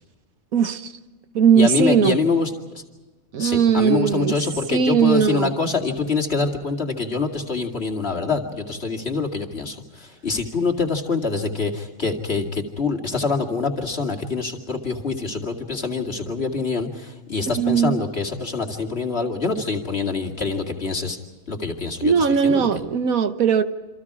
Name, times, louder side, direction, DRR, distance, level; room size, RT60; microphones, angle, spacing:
voice 1, 0.5-0.9 1.3-2.2 3.3-4.4 4.7-5.5 17.5-18.0 22.0-23.6, right 7 dB, 85° right, 10 dB, 1.6 m, -19 dB
voice 2, 1.5-2.8 3.4-21.2 21.5-22.7, left 4 dB, 50° left, 1 dB, 2.6 m, -25 dB
28.0 x 26.5 x 4.9 m, 1.2 s
omnidirectional pair, 1.4 m